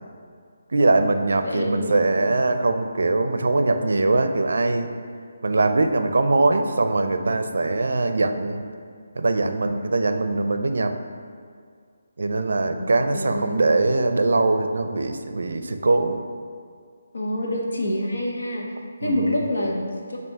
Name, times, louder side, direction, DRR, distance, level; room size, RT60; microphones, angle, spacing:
voice 1, 0.7-4.9 5.4-8.6 9.2-11.0 12.2-16.2 19.0-19.3, right 2 dB, 70° right, 7 dB, 0.5 m, -22 dB
voice 2, 1.3-2.1 12.6-13.6 17.1-20.2, left 1 dB, 85° left, -1 dB, 1.1 m, -27 dB
7.9 x 2.7 x 4.7 m, 2.1 s
hypercardioid pair, 175°, 0 cm